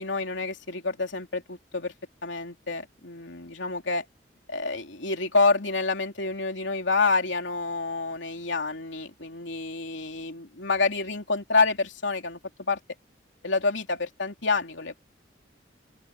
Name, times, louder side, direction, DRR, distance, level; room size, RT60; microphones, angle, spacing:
voice 1, 0.0-1.9 2.2-4.0 4.5-12.8 13.4-15.0, left 3 dB, 85° left, 3.2 m, -28 dB
open air
head